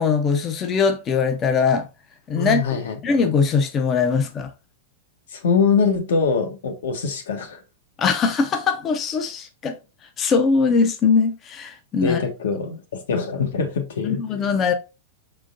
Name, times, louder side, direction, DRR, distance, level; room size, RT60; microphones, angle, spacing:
voice 1, 0.0-1.9 2.3-4.5 8.0-9.8 10.2-12.2 14.0-14.7, left 5 dB, 15° left, 0.4 m, -21 dB
voice 2, 2.4-3.0 5.3-7.6 12.0-14.2, left 5 dB, 85° left, 1.2 m, -23 dB
5.2 x 3.8 x 2.5 m
supercardioid pair, 180°, 0 cm